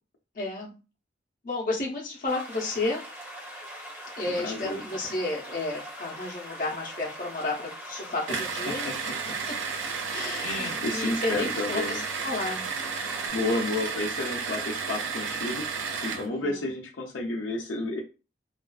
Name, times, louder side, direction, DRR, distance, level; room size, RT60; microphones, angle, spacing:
voice 1, 0.4-0.7 1.4-3.0 4.2-8.9 10.1-12.7 16.2-16.7, left 2 dB, 50° left, -3 dB, 0.7 m, -32 dB
sound 1, 2.3-13.3, equal, 10° right, 0.7 m, -42 dB
voice 2, 4.2-4.8 8.3-9.4 10.4-12.0 13.3-15.7 16.0-18.0, left 2 dB, 80° left, -1 dB, 0.5 m, -31 dB
sound 2, 8.3-16.3, right 5 dB, 85° right, 0.4 m, -32 dB
2.5 x 2.3 x 2.2 m, 0.32 s
head